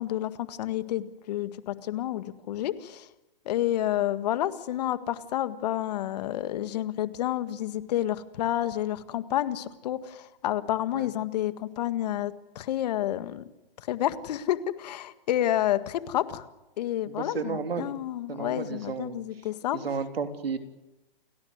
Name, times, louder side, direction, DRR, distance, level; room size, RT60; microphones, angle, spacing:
voice 1, 0.0-3.1 3.5-13.4 13.8-16.4 16.8-19.8, left 12 dB, 45° left, 12 dB, 1.8 m, -29 dB
voice 2, 17.1-17.9 18.3-19.2 19.7-20.6, right 5 dB, 85° right, 7 dB, 3.5 m, -32 dB
29.0 x 17.5 x 8.1 m, 0.99 s
hypercardioid pair, 150°, 29 cm